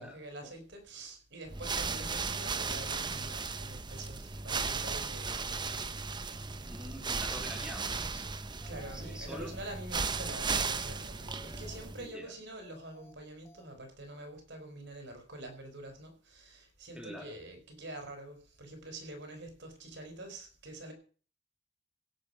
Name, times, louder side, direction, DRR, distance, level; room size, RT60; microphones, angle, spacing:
voice 1, 0.0-5.9 8.7-20.9, right 1 dB, 65° right, 5 dB, 5.2 m, -46 dB
sound 1, 1.5-12.1, right 4 dB, 25° right, 0.9 m, -36 dB
voice 2, 6.7-8.3 8.9-9.5 12.0-12.3 16.9-17.3, equal, 5° right, 0 dB, 4.2 m, -45 dB
sound 2, 8.6-9.1 9.5-9.6 10.0-10.5 10.8-11.0 11.3-11.8 12.1-12.3 12.6-13.1 13.5-13.6, left 2 dB, 15° left, 2.0 m, -58 dB
17.0 x 9.5 x 5.9 m, 0.40 s
head